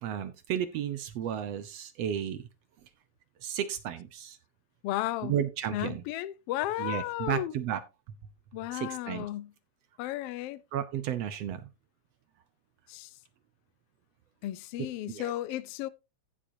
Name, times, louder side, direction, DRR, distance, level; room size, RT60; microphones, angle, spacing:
voice 1, 0.0-2.5 3.4-4.4 5.2-6.0 6.8-7.8 8.7-9.3 10.7-11.7 15.1-15.3, right 9 dB, 70° right, 1.7 m, -33 dB
voice 2, 4.8-5.3 5.7-7.5 8.5-9.5 10.0-10.6 12.9-13.1 14.4-15.9, left 14 dB, 80° left, 1.3 m, -34 dB
14.5 x 7.4 x 2.8 m
omnidirectional pair, 3.5 m